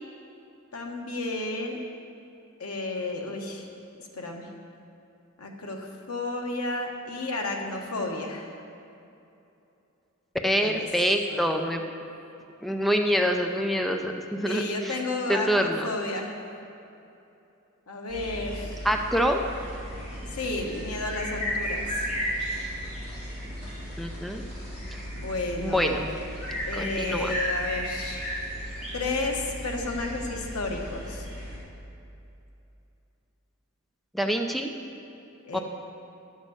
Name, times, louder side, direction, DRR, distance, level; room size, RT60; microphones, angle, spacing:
voice 1, 0.7-1.8 2.6-3.7 4.1-4.5 5.4-8.5 10.4-10.9 11.3-11.5 14.4-16.3 17.9-18.7 20.3-22.1 25.1-26.0 26.7-28.2 28.9-31.3 35.4-35.6, left 2 dB, 85° left, 1 dB, 1.4 m, -32 dB
voice 2, 10.4-11.8 12.6-15.0 15.3-15.9 18.8-19.4 24.0-24.4 24.9-25.1 25.6-26.1 26.7-27.3 34.1-34.7 35.5-35.6, equal, ahead, 4 dB, 0.5 m, -26 dB
sound 1, 18.1-31.6, equal, 30° left, 3.0 m, -34 dB
11.0 x 6.3 x 7.9 m, 2.8 s
head